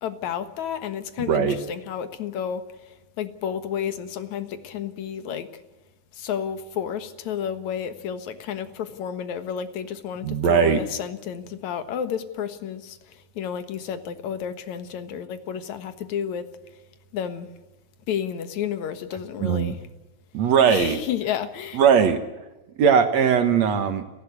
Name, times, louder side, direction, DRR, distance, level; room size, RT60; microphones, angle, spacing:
voice 1, 0.0-5.5 6.1-16.5 17.1-17.5 18.1-19.8 20.7-21.8, left 8 dB, 70° left, 10 dB, 2.7 m, -31 dB
voice 2, 10.2-10.8 19.4-19.7 20.3-21.0 21.8-22.2 22.8-24.0, right 7 dB, 65° right, 8 dB, 2.5 m, -19 dB
29.5 x 12.0 x 8.2 m, 1.1 s
omnidirectional pair, 3.4 m